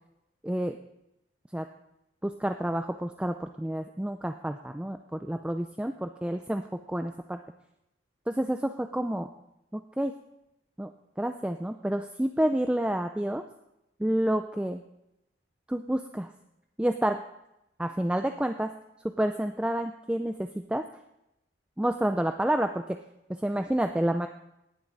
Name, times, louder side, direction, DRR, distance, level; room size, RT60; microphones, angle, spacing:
voice 1, 0.4-0.8 1.5-1.7 2.2-7.4 8.3-9.3 9.7-10.1 10.8-10.9 11.2-13.4 14.0-14.8 15.7-16.3 16.8-17.2 17.8-18.7 19.2-20.8 21.8-23.0 23.4-24.3, right 1 dB, 5° right, 6 dB, 0.4 m, -29 dB
18.0 x 8.0 x 4.0 m, 0.85 s
head